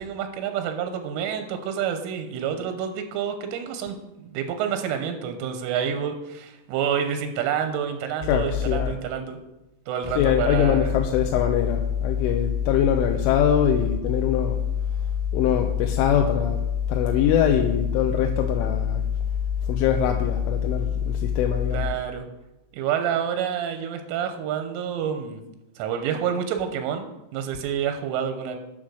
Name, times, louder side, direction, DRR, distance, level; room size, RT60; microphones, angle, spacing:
voice 1, 0.0-9.4 9.9-10.9 21.7-22.2 22.7-25.4 25.8-28.6, right 8 dB, 90° right, 7 dB, 3.4 m, -28 dB
voice 2, 8.3-8.9 10.2-14.6 15.3-16.6 16.9-19.0 19.7-21.9, left 8 dB, 85° left, 3 dB, 3.2 m, -22 dB
9.1 x 7.5 x 6.3 m, 0.96 s
omnidirectional pair, 5.6 m